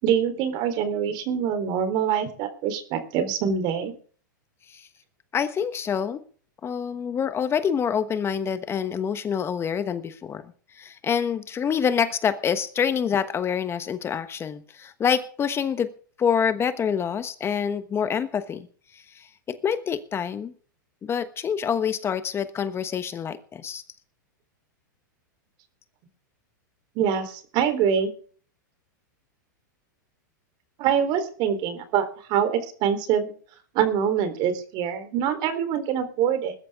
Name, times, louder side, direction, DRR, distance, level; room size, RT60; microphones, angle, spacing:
voice 1, 0.0-3.9 27.0-28.1 30.8-33.3 33.7-36.5, right 8 dB, 45° right, 9 dB, 3.8 m, -24 dB
voice 2, 5.3-6.2 6.6-15.9 16.2-18.7 18.9-20.5 21.0-23.8, left 7 dB, 25° left, 11 dB, 1.2 m, -26 dB
20.5 x 12.5 x 3.7 m, 0.44 s
hypercardioid pair, 115°, 11 cm